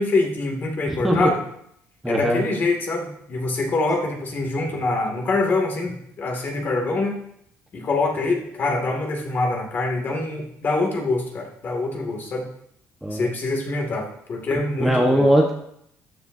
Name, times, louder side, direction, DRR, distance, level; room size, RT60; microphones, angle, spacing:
voice 1, 0.0-1.4 2.1-7.2 7.7-12.5 13.1-15.3, left 2 dB, 35° left, 2 dB, 2.3 m, -25 dB
voice 2, 0.9-1.3 2.0-2.4 13.0-13.3 14.8-15.5, equal, 5° right, -1 dB, 1.2 m, -20 dB
13.5 x 10.5 x 2.7 m, 0.71 s
cardioid pair, 145°, 6 cm